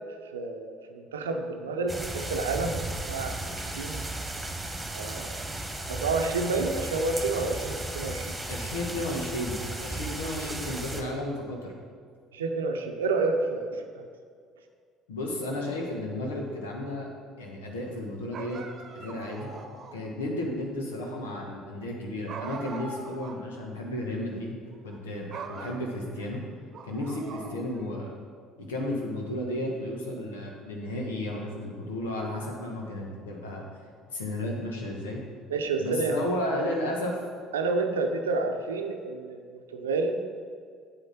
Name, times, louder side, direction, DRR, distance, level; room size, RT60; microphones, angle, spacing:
voice 1, 0.3-2.8 3.1-4.2 4.9-5.4 5.9-8.4 12.3-14.1 35.5-36.2 36.6-36.7 37.5-40.2, right 3 dB, 90° right, 5 dB, 0.7 m, -29 dB
sound 1, 1.9-11.0, right 2 dB, 15° right, 1.6 m, -35 dB
voice 2, 8.5-11.7 15.1-17.1 17.4-18.6 18.9-19.5 19.9-24.6 24.8-26.4 26.8-28.1 28.6-33.6 34.1-35.2 35.8-37.2, left 1 dB, 85° left, 0 dB, 1.5 m, -33 dB
sound 2, 18.3-20.1 22.3-23.5 23.8-23.9 24.7-25.0 25.3-26.3 26.7-27.9, right 4 dB, 50° right, 0.9 m, -42 dB
8.2 x 8.0 x 4.3 m, 2.1 s
hypercardioid pair, 60°, 0 cm